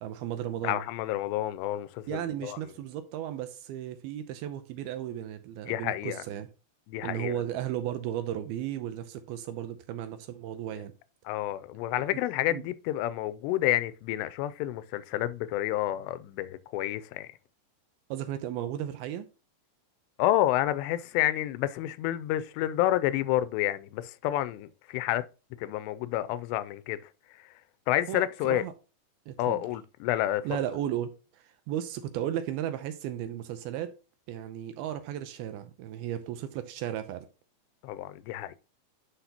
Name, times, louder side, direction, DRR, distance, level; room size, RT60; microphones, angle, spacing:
voice 1, 0.0-0.8 2.1-6.5 7.0-10.9 12.1-12.2 12.5-12.6 18.1-19.3 28.1-28.7 29.3-29.6 30.5-33.9 34.3-37.3, right 11 dB, 80° right, 2.4 m, -35 dB
voice 2, 0.6-2.6 5.7-6.2 6.9-7.4 11.3-17.3 20.2-25.2 25.6-27.0 27.4-27.5 27.9-28.6 29.4-30.4 37.8-38.6, left 14 dB, 90° left, 2.7 m, -29 dB
10.0 x 5.6 x 2.9 m
omnidirectional pair, 4.8 m